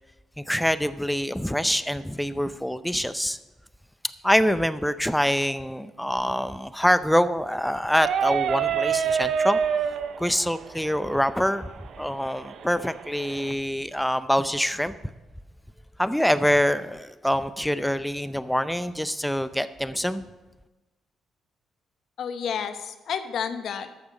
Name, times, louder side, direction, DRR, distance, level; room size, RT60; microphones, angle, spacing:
voice 1, 0.4-3.4 4.2-9.6 10.2-11.7 12.0-14.9 16.0-20.2, equal, 5° left, 13 dB, 0.5 m, -25 dB
sound 1, 7.9-13.5, right 7 dB, 65° right, 0.6 m, -28 dB
voice 2, 22.2-24.0, left 7 dB, 65° left, 9 dB, 0.9 m, -31 dB
12.0 x 6.8 x 5.4 m, 1.1 s
cardioid pair, 90°, 0 cm